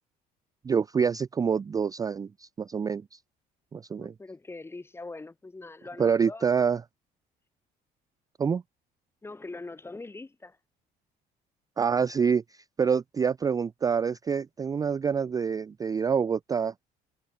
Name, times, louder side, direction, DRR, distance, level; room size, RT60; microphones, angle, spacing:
voice 1, 0.6-3.2 3.7-4.1 6.0-6.8 8.4-8.6 11.8-16.7, right 6 dB, 20° right, 0.3 m, -26 dB
voice 2, 4.0-6.5 9.2-10.6, left 3 dB, 15° left, 1.3 m, -42 dB
cardioid pair, 110°, 17 cm